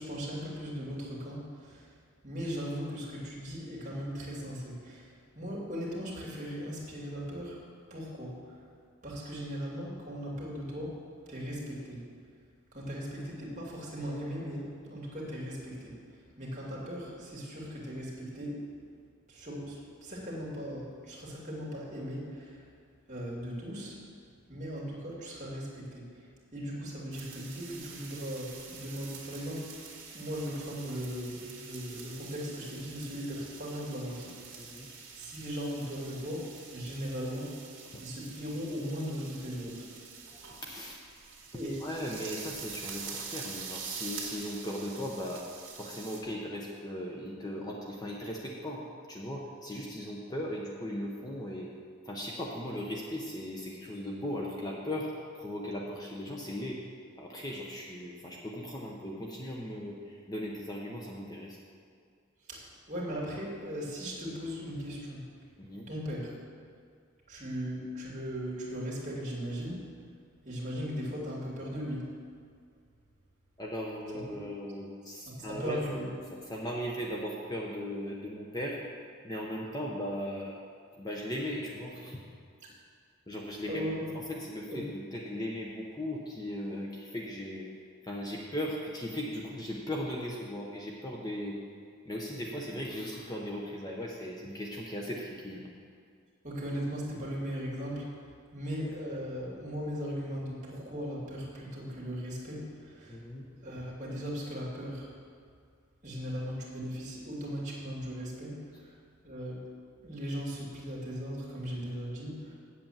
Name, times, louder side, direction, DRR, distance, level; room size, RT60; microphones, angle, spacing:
voice 1, 0.0-1.9 2.2-7.6 7.9-8.6 9.0-11.0 11.3-12.0 12.7-18.8 19.3-22.7 23.1-24.0 24.5-29.7 30.1-34.7 35.1-37.5 38.0-39.8 40.1-40.2 41.5-41.8 62.4-65.3 65.9-66.3 67.3-69.8 70.4-72.1 75.3-76.1 83.7-84.1 84.7-84.8 96.4-103.2 103.6-105.1 106.0-108.9 109.2-109.6 110.0-112.5, equal, 35° right, -5 dB, 2.5 m, -38 dB
sound 1, 27.1-46.2, right 5 dB, 65° right, 2.0 m, -46 dB
voice 2, 40.5-41.0 41.8-45.4 45.8-48.8 49.1-51.7 52.0-55.1 55.3-56.8 57.2-61.6 65.6-65.9 73.6-76.1 76.5-78.8 79.2-80.6 81.0-82.2 83.3-83.8 84.3-87.7 88.0-91.6 92.0-95.7 103.1-103.4, equal, 20° left, -2 dB, 0.8 m, -38 dB
8.5 x 7.9 x 7.3 m, 2.2 s
head